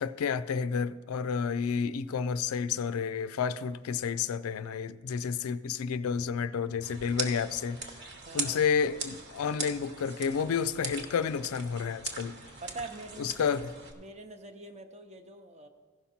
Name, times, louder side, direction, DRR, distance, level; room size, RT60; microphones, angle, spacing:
voice 1, 0.0-8.0 8.3-12.4 13.2-13.7, left 6 dB, 85° left, 0.4 m, -30 dB
sound 1, 6.8-13.9, right 3 dB, 55° right, 1.1 m, -40 dB
voice 2, 8.2-8.7 12.6-13.6 14.0-15.7, right 2 dB, 30° right, 0.6 m, -44 dB
15.5 x 5.8 x 4.2 m
head